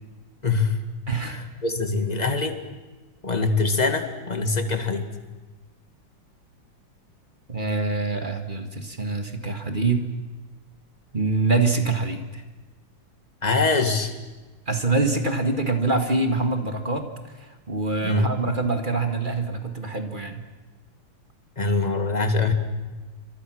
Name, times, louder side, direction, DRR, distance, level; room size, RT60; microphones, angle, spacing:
voice 1, 0.4-0.8 1.3-2.6 3.2-5.1 13.4-14.1 18.0-18.3 21.6-22.5, left 3 dB, 20° left, 7 dB, 1.9 m, -23 dB
voice 2, 1.1-1.5 7.5-10.1 11.1-12.4 14.7-17.1 17.3-20.5, right 3 dB, 25° right, 6 dB, 1.9 m, -25 dB
29.0 x 24.5 x 6.4 m, 1.2 s
omnidirectional pair, 2.2 m